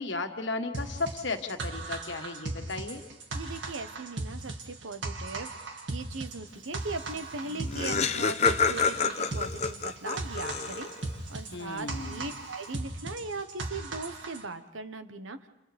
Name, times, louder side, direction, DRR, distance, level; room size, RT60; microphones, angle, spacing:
voice 1, 0.0-3.0 11.5-12.4, left 3 dB, 65° left, 5 dB, 1.5 m, -35 dB
sound 1, 0.7-14.4, right 2 dB, 65° right, 2.1 m, -38 dB
voice 2, 3.3-5.5 5.9-10.9 11.3-15.5, right 3 dB, 90° right, 9 dB, 1.2 m, -39 dB
Laughter, 7.2-7.3 7.4-11.1, left 5 dB, 35° left, 0.8 m, -28 dB
29.5 x 29.5 x 3.5 m, 0.99 s
head